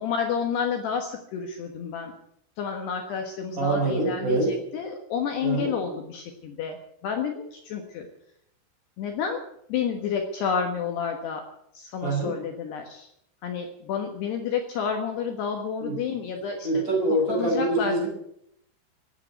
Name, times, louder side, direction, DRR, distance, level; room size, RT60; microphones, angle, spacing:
voice 1, 0.0-2.1 2.6-6.8 7.0-8.1 9.0-9.4 9.7-11.4 11.7-13.1 13.4-16.8 17.3-18.1, left 6 dB, 65° left, 4 dB, 3.1 m, -30 dB
voice 2, 3.6-4.5 5.4-5.7 12.0-12.4 15.8-16.0 16.6-18.1, right 2 dB, 15° right, -1 dB, 5.2 m, -25 dB
17.5 x 8.7 x 9.3 m, 0.75 s
omnidirectional pair, 5.7 m